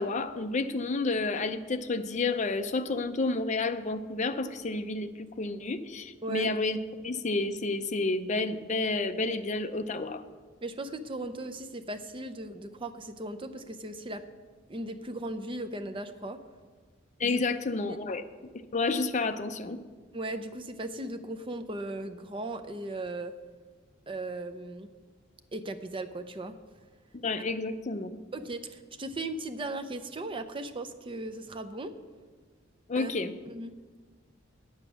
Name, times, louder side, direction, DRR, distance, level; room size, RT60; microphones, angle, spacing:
voice 1, 0.0-6.8 7.0-10.2 17.2-19.8 27.2-28.1 32.9-33.3, left 3 dB, 40° left, 9 dB, 0.5 m, -30 dB
voice 2, 6.2-6.5 10.6-14.2 14.7-16.4 17.2-17.4 17.9-18.0 20.1-23.3 24.1-24.9 25.5-26.5 28.3-31.9 33.0-33.1 33.5-33.7, right 2 dB, 25° right, 8 dB, 0.6 m, -37 dB
8.8 x 8.0 x 6.2 m, 1.4 s
head